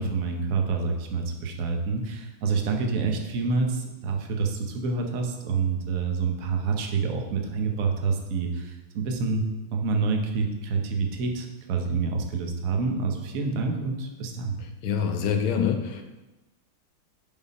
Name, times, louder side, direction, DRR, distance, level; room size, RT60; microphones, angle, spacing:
voice 1, 0.0-9.4 9.7-14.6, right 4 dB, 55° right, 2 dB, 1.1 m, -27 dB
voice 2, 14.8-16.0, left 7 dB, 80° left, 6 dB, 1.6 m, -25 dB
7.1 x 4.4 x 5.3 m, 1.1 s
omnidirectional pair, 2.3 m